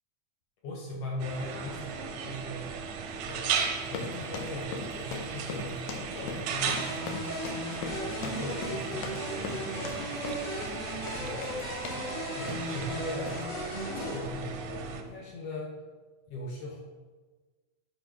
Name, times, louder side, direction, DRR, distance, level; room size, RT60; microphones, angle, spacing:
voice 1, 0.6-3.0 3.3-5.8 6.1-7.2 7.8-10.2 10.9-11.6 12.3-13.4 13.8-15.8 16.3-16.8, left 1 dB, 65° left, -2 dB, 1.7 m, -39 dB
sound 1, 1.2-15.0, right 6 dB, 90° right, 2.1 m, -36 dB
sound 2, 3.8-12.1 12.4-12.8 13.2-13.4, left 5 dB, 80° left, 2.2 m, -40 dB
sound 3, 6.7-14.2, equal, 50° left, 2.3 m, -37 dB
6.2 x 5.0 x 4.6 m, 1.3 s
omnidirectional pair, 3.5 m